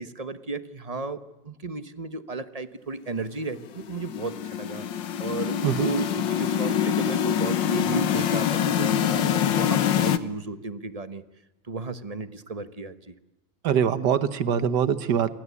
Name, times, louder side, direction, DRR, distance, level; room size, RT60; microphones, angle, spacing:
voice 1, 0.0-11.2 11.6-13.1, right 3 dB, 25° right, 11 dB, 1.1 m, -34 dB
sound 1, 3.8-10.2, left 9 dB, 75° left, 1.8 m, -25 dB
voice 2, 13.6-15.3, right 8 dB, 65° right, 13 dB, 1.8 m, -23 dB
28.0 x 23.0 x 8.4 m, 1.0 s
omnidirectional pair, 2.0 m